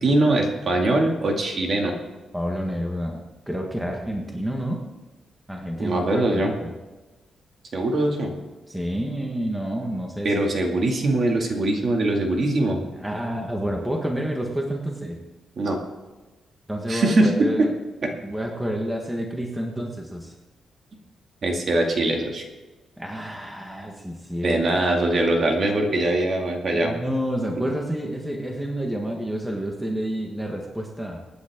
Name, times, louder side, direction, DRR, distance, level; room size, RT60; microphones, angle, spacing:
voice 1, 0.0-1.9 5.8-6.5 7.7-8.3 10.2-12.8 15.6-15.8 16.9-17.7 18.0-18.1 21.4-22.4 24.4-26.9, right 2 dB, 40° right, 2 dB, 2.3 m, -22 dB
voice 2, 2.3-4.8 5.5-6.7 8.7-10.3 12.9-15.2 16.7-17.7 18.2-20.3 23.0-24.6 26.8-31.3, equal, 5° right, 0 dB, 1.4 m, -29 dB
25.0 x 9.6 x 3.7 m, 1.2 s
wide cardioid pair, 165°, 0 cm